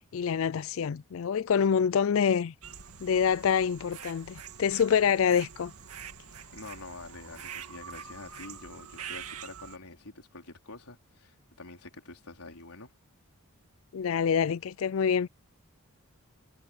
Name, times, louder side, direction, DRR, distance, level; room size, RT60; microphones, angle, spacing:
voice 1, 0.1-2.5 3.0-5.7 13.9-15.3, left 7 dB, 65° left, 0.4 m, -26 dB
sound 1, 2.6-9.8, right 7 dB, 85° right, 2.3 m, -45 dB
voice 2, 6.5-12.9, left 3 dB, 90° left, 4.3 m, -47 dB
head